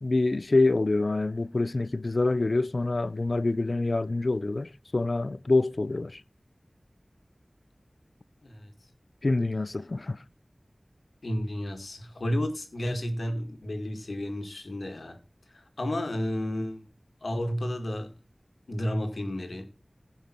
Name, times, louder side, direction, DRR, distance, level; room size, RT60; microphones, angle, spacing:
voice 1, 0.0-6.2 9.2-10.2, left 2 dB, 60° left, 0.4 m, -26 dB
voice 2, 11.2-15.2 15.5-16.9 17.2-18.1 18.7-19.7, left 1 dB, 80° left, 1.9 m, -32 dB
15.5 x 5.5 x 4.4 m
wide cardioid pair, 55°, 0 cm